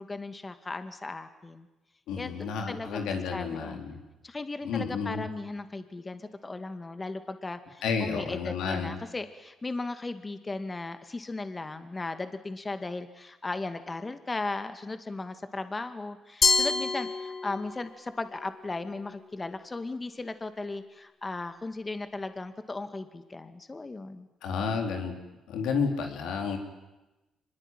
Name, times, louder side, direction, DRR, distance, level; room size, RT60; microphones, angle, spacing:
voice 1, 0.0-1.7 2.2-3.8 4.2-24.3, left 3 dB, 25° left, 9 dB, 2.1 m, -36 dB
voice 2, 2.1-4.0 4.6-5.3 7.8-9.0 24.4-25.2 25.5-26.6, left 5 dB, 85° left, 4 dB, 3.9 m, -31 dB
Glass, 16.4-17.9, left 4 dB, 55° left, 3.8 m, -26 dB
24.5 x 21.0 x 9.2 m, 1.0 s
supercardioid pair, 70°, 0 cm